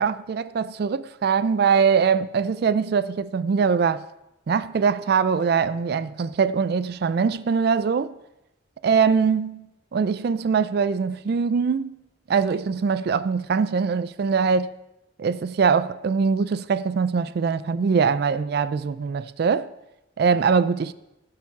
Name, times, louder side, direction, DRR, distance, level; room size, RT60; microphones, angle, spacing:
voice 1, 0.0-4.0 4.5-8.1 8.8-12.0 12.3-14.7 15.2-19.7 20.2-20.9, right 5 dB, 55° right, 0.4 m, -22 dB
11.5 x 7.0 x 5.8 m
head